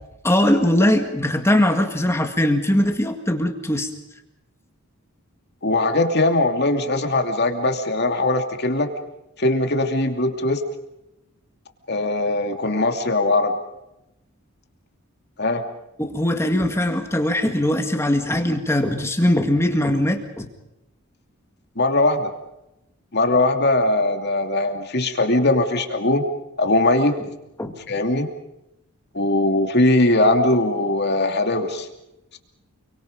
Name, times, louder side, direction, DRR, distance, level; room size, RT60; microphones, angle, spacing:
voice 1, 0.2-3.9 16.0-20.5 27.6-27.7, left 1 dB, 10° left, 5 dB, 2.0 m, -20 dB
voice 2, 5.6-8.9 9.4-10.6 11.9-13.5 15.4-15.6 21.8-22.3 23.1-26.2 26.6-27.1 27.9-28.3 29.1-31.9, left 2 dB, 50° left, 5 dB, 2.8 m, -20 dB
29.5 x 24.0 x 5.3 m, 0.90 s
head